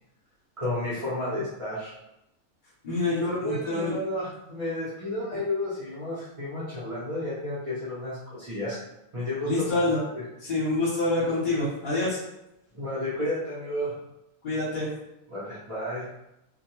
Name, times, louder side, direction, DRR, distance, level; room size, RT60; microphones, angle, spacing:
voice 1, 0.6-1.9 3.2-8.8 9.1-10.2 12.7-14.0 15.3-16.1, left 1 dB, 30° right, -10 dB, 0.7 m, -32 dB
voice 2, 2.8-3.9 9.5-10.0 10.4-12.2 14.4-14.9, left 2 dB, 40° left, -8 dB, 0.9 m, -26 dB
2.3 x 2.2 x 3.0 m, 0.87 s
omnidirectional pair, 1.4 m